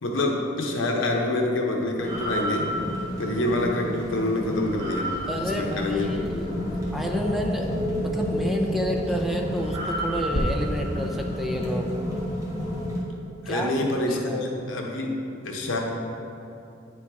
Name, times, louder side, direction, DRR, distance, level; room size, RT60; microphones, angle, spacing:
voice 1, 0.0-2.7 3.2-5.1 5.4-6.4 13.4-15.1 15.4-15.8, left 1 dB, 90° left, 0 dB, 0.9 m, -26 dB
sound 1, 2.0-13.0, equal, 15° right, 1.2 m, -30 dB
Bird vocalization bird call bird song, 4.7-10.4, left 1 dB, 60° left, 0.8 m, -38 dB
voice 2, 5.3-6.5 6.9-7.7 8.0-12.0 13.5-13.8 14.1-14.4, equal, ahead, 1 dB, 0.4 m, -30 dB
9.4 x 4.5 x 3.6 m, 2.8 s
head